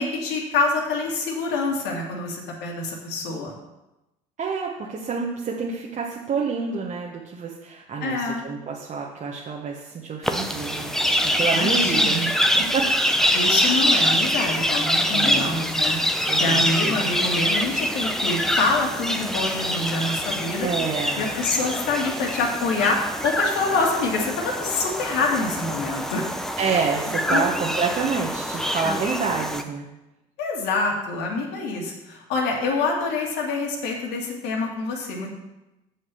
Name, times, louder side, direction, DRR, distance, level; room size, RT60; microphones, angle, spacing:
voice 1, 0.0-3.6 8.0-8.4 11.5-12.3 13.3-16.0 16.4-20.7 21.2-26.3 27.3-27.5 30.4-35.3, left 3 dB, 70° left, 0 dB, 2.5 m, -26 dB
voice 2, 4.4-10.9 11.2-12.2 12.5-12.8 15.1-15.6 16.3-17.2 20.6-21.3 26.6-29.9, right 5 dB, 45° right, -2 dB, 1.4 m, -28 dB
sound 1, 10.2-29.6, equal, ahead, 1.0 m, -24 dB
7.7 x 6.5 x 7.1 m, 0.97 s
hypercardioid pair, 65°, 18 cm